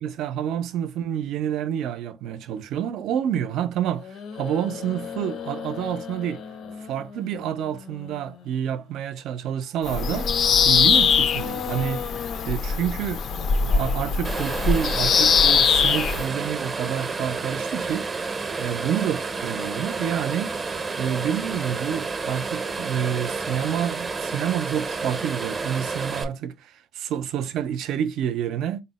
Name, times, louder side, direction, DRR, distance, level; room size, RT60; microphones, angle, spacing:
voice 1, 0.0-6.4 6.9-10.3 10.6-12.0 12.4-13.2 13.7-18.1 18.6-20.6 21.0-28.8, right 9 dB, 90° right, 0.4 m, -28 dB
sound 1, 3.9-8.8 10.0-12.5, left 7 dB, 80° left, 0.7 m, -36 dB
Bird vocalization bird call bird song, 9.8-16.3, left 6 dB, 55° left, 0.4 m, -21 dB
sound 2, 14.2-26.2, right 4 dB, 30° right, 0.5 m, -30 dB
4.0 x 2.1 x 4.0 m
cardioid pair, 135°, 0 cm